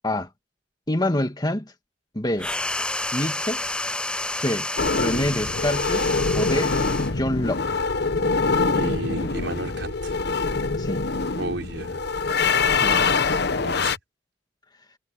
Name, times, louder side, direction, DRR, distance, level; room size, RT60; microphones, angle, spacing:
voice 1, 0.9-1.7 2.1-2.5 3.1-3.6 4.3-4.7 4.9-7.6 10.8-11.1 12.4-13.4, left 1 dB, 20° left, 2.2 m, -27 dB
sound 1, 2.4-7.2, left 2 dB, 5° left, 0.4 m, -29 dB
sound 2, 4.8-14.0, left 4 dB, 60° left, 1.1 m, -24 dB
voice 2, 8.7-10.1 11.4-12.0 13.6-13.9, right 2 dB, 80° right, 5.5 m, -32 dB
head